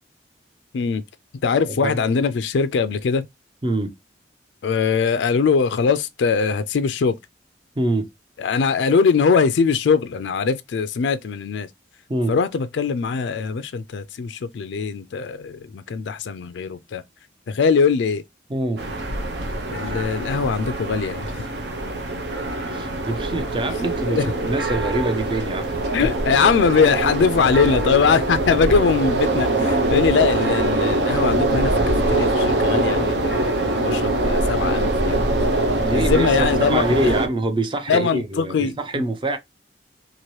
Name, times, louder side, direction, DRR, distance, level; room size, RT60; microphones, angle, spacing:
voice 1, 1.4-3.2 4.6-7.2 8.4-11.7 12.3-17.0 17.5-18.2 19.7-21.3 24.1-24.2 25.9-35.2 35.9-37.1 37.9-39.1, left 5 dB, 80° left, 0.4 m, -21 dB
voice 2, 3.6-3.9 7.8-8.1 12.1-12.4 18.5-18.9 22.7-25.8 35.8-39.4, right 1 dB, 25° right, 0.4 m, -25 dB
sound 1, 18.8-37.3, right 2 dB, 70° right, 0.7 m, -23 dB
2.9 x 2.6 x 3.0 m
head